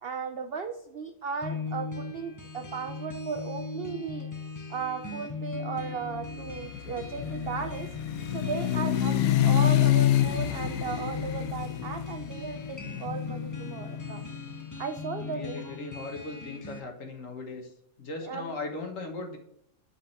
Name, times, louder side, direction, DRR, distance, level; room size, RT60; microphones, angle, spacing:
voice 1, 0.0-4.3 4.7-7.9 8.3-14.2 14.8-15.8 18.2-18.5, right 5 dB, 85° right, 7 dB, 0.5 m, -36 dB
sound 1, 1.4-16.8, left 4 dB, 20° left, 0.5 m, -38 dB
sound 2, 6.4-14.4, left 12 dB, 70° left, 0.9 m, -27 dB
voice 2, 15.2-19.4, left 3 dB, 55° left, 4 dB, 1.6 m, -38 dB
5.8 x 5.0 x 5.7 m, 0.74 s
omnidirectional pair, 1.7 m